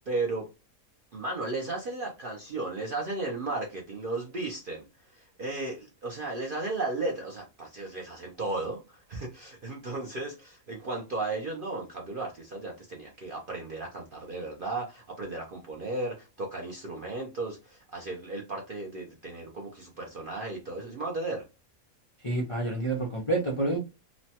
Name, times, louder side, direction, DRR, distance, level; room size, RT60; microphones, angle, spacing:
voice 1, 0.1-0.5 1.1-21.4, right 2 dB, 60° right, 0 dB, 0.5 m, -35 dB
voice 2, 22.2-23.8, right 2 dB, 55° left, -1 dB, 0.3 m, -28 dB
3.0 x 2.1 x 2.8 m, 0.27 s
omnidirectional pair, 1.6 m